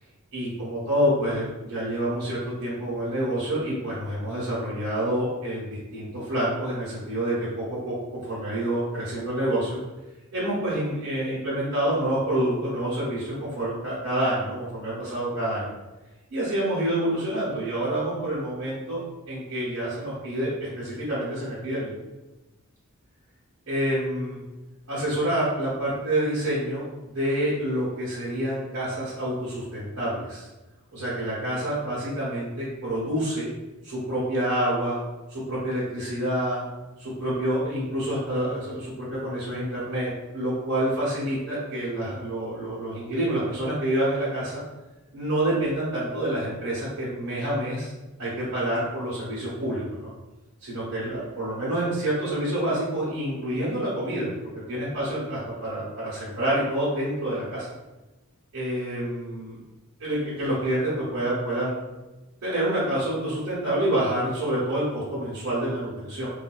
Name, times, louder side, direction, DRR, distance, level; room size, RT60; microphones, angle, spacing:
voice 1, 0.3-9.8 10.3-15.7 16.3-21.9 23.7-24.4 24.9-26.8 27.1-30.4 30.9-33.5 33.8-35.0 35.3-36.6 37.0-44.6 45.1-47.9 48.2-50.1 50.6-54.3 54.7-57.7 58.5-59.6 60.0-61.7 62.4-66.3, right 1 dB, 70° right, -10 dB, 1.2 m, -27 dB
3.6 x 2.6 x 2.3 m, 1.1 s
head